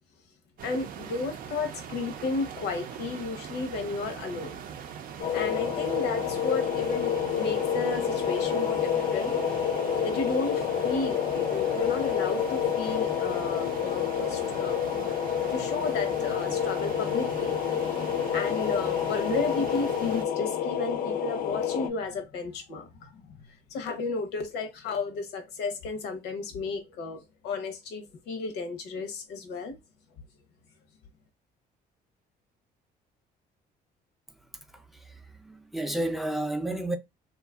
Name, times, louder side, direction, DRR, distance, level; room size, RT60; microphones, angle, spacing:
voice 1, 0.6-4.6 5.3-9.3 10.0-14.8 15.1-17.5 18.3-29.8, left 4 dB, 85° left, 0.8 m, -33 dB
sound 1, 0.6-20.2, right 8 dB, 60° right, 0.5 m, -41 dB
sound 2, 5.2-21.9, left 8 dB, 60° left, 0.4 m, -28 dB
voice 2, 34.7-37.0, right 1 dB, ahead, 0.4 m, -32 dB
2.8 x 2.3 x 2.3 m
cardioid pair, 110°, 17 cm